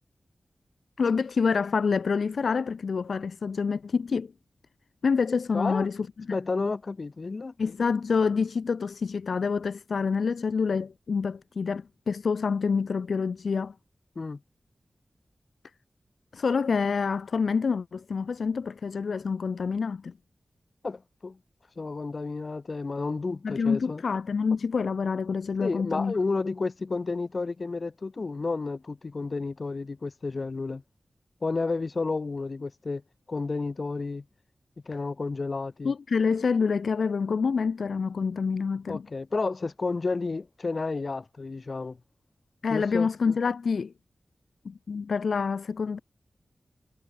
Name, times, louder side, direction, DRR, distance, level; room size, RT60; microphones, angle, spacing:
voice 1, 1.0-4.3 5.0-6.0 6.3-6.4 7.6-13.7 16.3-20.1 23.4-26.1 35.8-39.0 42.6-43.9 44.7-46.0, left 5 dB, 80° left, 2.1 m, -27 dB
voice 2, 5.5-5.9 6.3-7.5 14.2-14.4 20.8-21.4 21.8-24.0 25.6-30.8 31.4-33.0 33.3-34.2 34.9-35.9 38.9-42.0 42.7-43.1, left 3 dB, 55° left, 4.1 m, -31 dB
cardioid pair, 45°, 0 cm